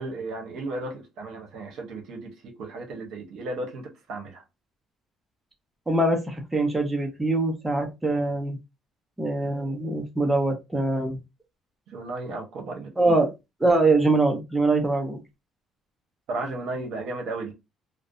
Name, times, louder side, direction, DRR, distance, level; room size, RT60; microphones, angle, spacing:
voice 1, 0.0-4.4 11.9-12.9 16.3-17.5, right 2 dB, 60° right, 0.7 m, -34 dB
voice 2, 5.9-8.6 9.2-11.2 13.0-13.3 13.6-15.2, right 2 dB, 10° right, 0.5 m, -23 dB
2.5 x 2.0 x 2.4 m
cardioid pair, 165°, 0 cm